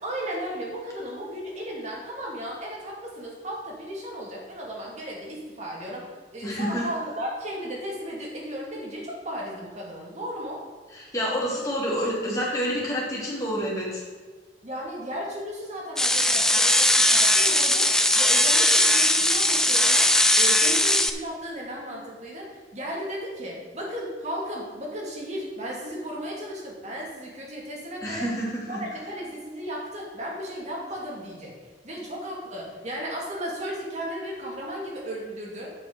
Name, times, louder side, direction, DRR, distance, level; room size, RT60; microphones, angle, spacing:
voice 1, 0.0-10.6 14.6-20.1 20.4-28.3 28.7-35.7, equal, 40° right, -2 dB, 2.8 m, -35 dB
voice 2, 6.4-6.9 10.9-14.0 28.0-28.8, equal, 20° left, -5 dB, 3.0 m, -28 dB
sound 1, 16.0-21.1, left 1 dB, 5° left, 0.5 m, -19 dB
8.9 x 6.3 x 6.3 m, 1.4 s
head